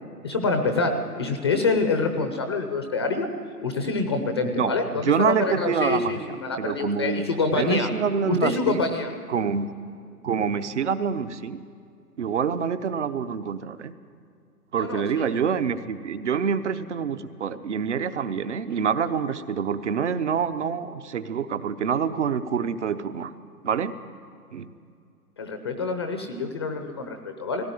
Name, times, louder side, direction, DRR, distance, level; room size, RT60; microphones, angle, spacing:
voice 1, 0.2-3.3 3.6-7.9 8.3-9.1 14.8-15.3 25.4-27.6, left 3 dB, 15° left, 6 dB, 0.6 m, -26 dB
voice 2, 4.5-6.2 6.6-7.3 7.6-8.8 9.3-9.7 10.2-11.6 12.2-13.9 14.7-23.3 23.6-24.0 24.5-24.7, right 7 dB, 45° right, 10 dB, 1.0 m, -26 dB
19.0 x 17.0 x 9.4 m, 2.4 s
hypercardioid pair, 155°, 48 cm